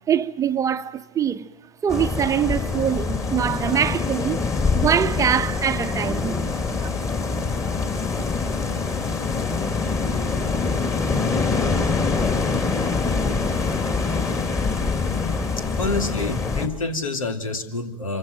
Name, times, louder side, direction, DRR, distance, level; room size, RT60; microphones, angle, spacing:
voice 1, 0.1-1.5 1.8-4.4 4.7-6.9, right 8 dB, 20° right, 1.0 m, -23 dB
sound 1, 1.9-16.7, left 4 dB, 20° left, 3.1 m, -24 dB
sound 2, 6.2-13.1, left 7 dB, 50° left, 4.1 m, -41 dB
voice 2, 15.6-18.2, left 3 dB, 80° left, 3.0 m, -27 dB
26.0 x 24.5 x 9.2 m
hypercardioid pair, 105°, 17 cm